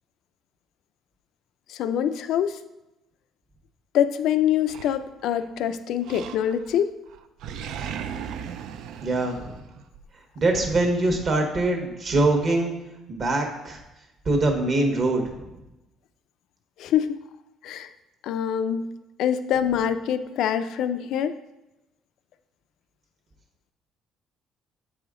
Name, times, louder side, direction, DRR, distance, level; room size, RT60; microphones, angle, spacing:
voice 1, 1.7-2.6 3.9-6.9 16.8-17.1 17.6-17.9 18.2-18.9 19.2-21.4, left 9 dB, 70° left, 11 dB, 0.4 m, -25 dB
Animal, 4.7-5.5 6.0-6.8 7.1-10.0, right 8 dB, 75° right, 0.4 m, -37 dB
voice 2, 9.0-9.6 10.3-12.8 13.1-13.8 14.2-15.5, right 2 dB, 40° right, 3 dB, 1.1 m, -23 dB
7.9 x 4.9 x 3.7 m, 0.96 s
cardioid pair, 150°, 0 cm